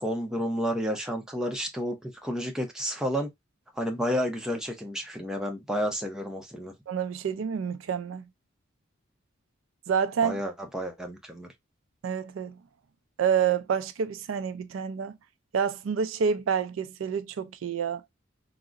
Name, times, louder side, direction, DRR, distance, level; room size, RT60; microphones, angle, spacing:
voice 1, 0.0-3.3 3.8-6.7 10.2-11.5, equal, 5° right, 0.6 m, -31 dB
voice 2, 6.9-8.2 9.9-10.4 12.0-12.6 13.2-15.1 15.5-18.0, right 7 dB, 90° right, 0.4 m, -28 dB
3.7 x 2.0 x 2.4 m
head